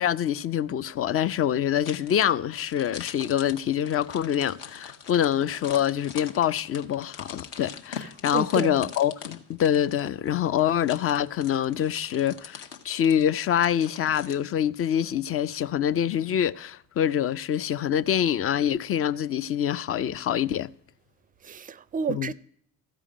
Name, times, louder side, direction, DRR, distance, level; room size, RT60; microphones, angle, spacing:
voice 1, 0.0-20.7 22.1-22.3, left 10 dB, 35° left, 0.5 m, -25 dB
sound 1, 1.8-14.4, left 7 dB, 55° left, 1.1 m, -43 dB
voice 2, 8.3-8.9 21.4-22.3, right 6 dB, 20° right, 0.4 m, -31 dB
14.0 x 4.9 x 9.0 m
figure-of-eight pair, 50°, 42 cm